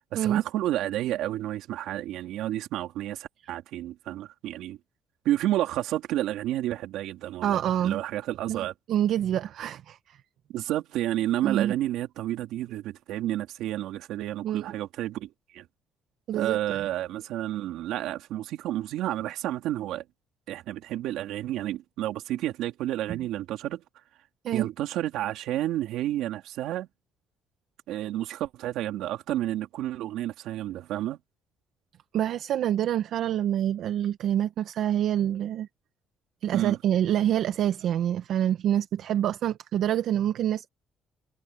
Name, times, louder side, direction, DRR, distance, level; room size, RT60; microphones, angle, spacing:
voice 1, 0.1-4.8 5.3-7.6 7.8-8.7 10.5-15.7 16.3-20.0 20.5-23.8 24.5-26.9 27.9-31.2 36.5-36.8, right 13 dB, 80° right, 3.5 m, -30 dB
voice 2, 7.4-8.0 8.5-10.2 11.4-11.7 14.4-14.7 16.3-16.8 24.4-24.7 32.1-35.7 36.4-40.7, right 11 dB, 65° right, 1.0 m, -26 dB
cardioid pair, 125°, 0 cm